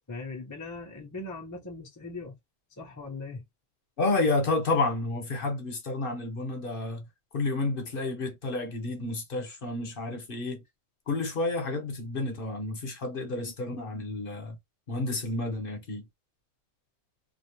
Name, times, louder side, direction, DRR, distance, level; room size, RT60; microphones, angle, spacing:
voice 1, 0.1-2.4 2.8-3.4 13.4-13.5, left 3 dB, 20° left, 0.5 m, -40 dB
voice 2, 4.0-7.1 7.3-10.6 11.1-14.6 14.9-16.1, left 2 dB, 55° left, 1.0 m, -30 dB
2.4 x 2.0 x 2.9 m
omnidirectional pair, 1.2 m